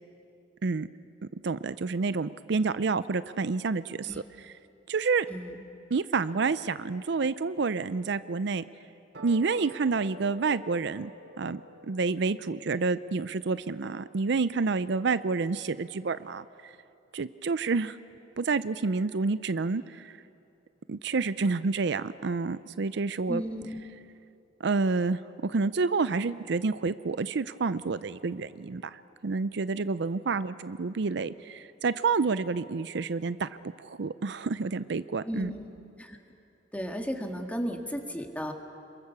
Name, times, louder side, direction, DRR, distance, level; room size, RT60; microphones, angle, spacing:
voice 1, 1.4-4.1 4.4-4.5 4.9-5.3 5.9-8.6 9.2-11.1 11.4-11.6 11.9-16.7 17.1-18.0 18.4-20.2 20.9-23.4 24.6-33.5 33.8-35.5, right 4 dB, 70° right, 14 dB, 0.5 m, -29 dB
voice 2, 5.3-5.6 23.3-23.8 35.2-35.7 36.0-36.2 36.7-38.5, equal, 10° left, 3 dB, 1.8 m, -34 dB
sound 1, 9.1-15.7, right 1 dB, 85° right, 4.4 m, -51 dB
27.0 x 23.0 x 7.0 m, 2.6 s
head